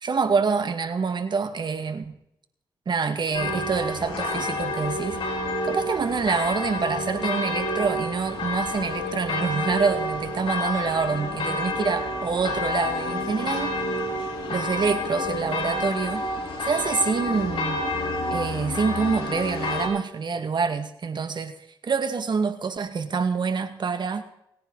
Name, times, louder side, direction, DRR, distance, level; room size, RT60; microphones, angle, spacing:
voice 1, 0.0-2.1 2.9-5.2 5.6-13.8 14.5-16.3 16.6-17.8 18.3-21.6 21.8-24.2, right 5 dB, 55° right, 8 dB, 2.2 m, -26 dB
sound 1, 3.3-19.9, left 1 dB, 75° left, 4.8 m, -29 dB
28.0 x 10.0 x 4.2 m, 0.79 s
cardioid pair, 60°, 9 cm